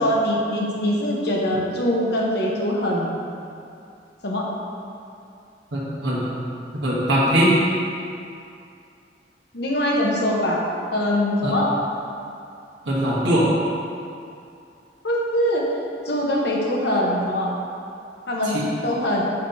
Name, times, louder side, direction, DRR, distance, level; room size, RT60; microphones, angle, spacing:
voice 1, 0.0-3.2 4.2-4.5 9.5-10.6 10.9-11.7 15.0-15.6 16.0-17.5 18.3-19.2, left 1 dB, 60° left, -2 dB, 1.1 m, -22 dB
voice 2, 5.7-6.3 6.7-7.5 11.4-11.5 12.8-13.5 18.5-18.6, equal, 75° right, -7 dB, 1.3 m, -21 dB
7.5 x 6.8 x 2.8 m, 2.5 s
head